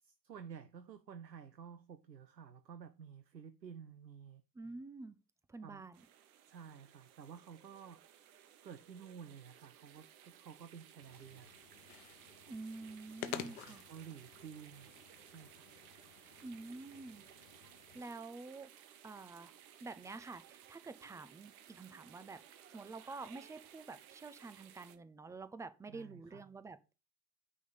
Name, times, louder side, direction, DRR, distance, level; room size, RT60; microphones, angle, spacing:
voice 1, 0.0-4.4 5.6-5.9 6.5-8.0 8.6-11.5 13.2-14.9 15.2-15.6 25.9-26.4, right 7 dB, 85° right, 0.7 m, -52 dB
voice 2, 4.5-5.2 5.5-6.0 12.5-13.8 16.4-17.2 17.9-19.5 19.8-27.0, right 3 dB, 5° right, 0.5 m, -48 dB
fountain.plvr, 5.9-25.0, right 10 dB, 60° right, 1.2 m, -59 dB
sound 1, 11.0-18.0, left 12 dB, 50° left, 1.0 m, -51 dB
9.3 x 3.7 x 6.7 m
figure-of-eight pair, 75°, 49 cm